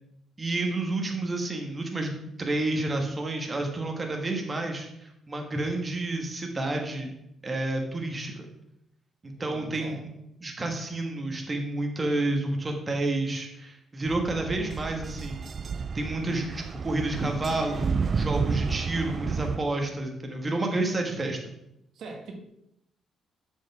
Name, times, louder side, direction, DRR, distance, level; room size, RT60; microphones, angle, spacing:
voice 1, 0.4-7.1 7.4-8.5 9.2-10.1 10.4-15.5 15.9-21.4, right 2 dB, 25° right, 2 dB, 1.5 m, -30 dB
voice 2, 9.4-10.0 21.1-21.2 21.9-22.3, right 3 dB, 70° right, 2 dB, 1.5 m, -42 dB
sound 1, 14.1-19.6, right 5 dB, 45° right, 0.4 m, -31 dB
7.2 x 5.4 x 5.7 m, 0.81 s
cardioid pair, 90°, 0 cm